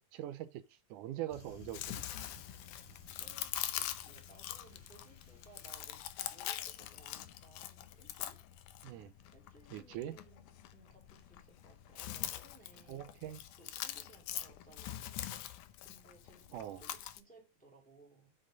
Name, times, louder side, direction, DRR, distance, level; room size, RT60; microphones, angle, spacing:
voice 1, 0.0-2.1 8.8-9.1 9.7-10.2 12.9-13.4 16.5-16.8, right 12 dB, 80° right, 2.2 m, -43 dB
sound 1, 1.3-7.5, left 2 dB, 35° left, 1.1 m, -59 dB
Chewing mastication, 1.5-17.2, left 12 dB, 80° left, 2.3 m, -44 dB
voice 2, 3.1-8.4 9.3-13.0 13.6-15.3 15.8-18.3, right 2 dB, 5° left, 2.1 m, -62 dB
7.8 x 5.7 x 5.1 m
omnidirectional pair, 3.6 m